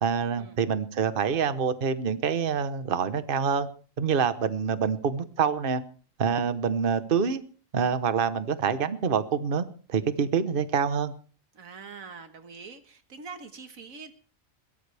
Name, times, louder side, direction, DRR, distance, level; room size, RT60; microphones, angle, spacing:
voice 1, 0.0-3.7 4.0-5.8 6.2-7.4 7.7-9.6 9.9-11.1, right 6 dB, 45° right, 12 dB, 1.2 m, -26 dB
voice 2, 11.5-14.1, right 5 dB, 85° right, 8 dB, 2.0 m, -44 dB
22.0 x 17.0 x 3.4 m, 0.40 s
omnidirectional pair, 1.4 m